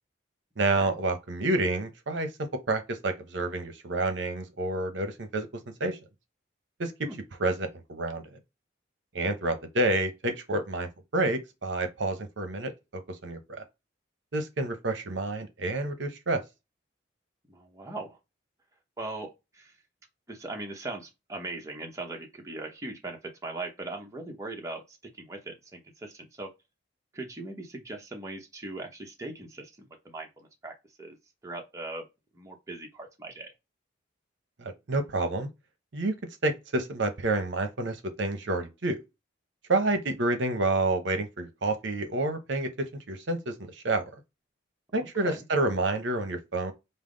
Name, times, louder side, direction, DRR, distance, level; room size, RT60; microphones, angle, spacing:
voice 1, 0.6-2.3 2.7-5.5 5.8-6.0 6.8-6.9 7.4-8.2 9.1-13.6 14.3-16.4 34.6-35.5 35.9-36.1 36.4-39.0 39.7-44.0 44.9-46.7, right 2 dB, 65° right, 0.8 m, -29 dB
voice 2, 17.5-18.2 19.0-19.8 20.3-26.5 27.1-31.2 31.4-32.0 32.3-33.5 44.9-45.4, right 2 dB, 15° right, 0.8 m, -40 dB
5.5 x 2.0 x 3.8 m
head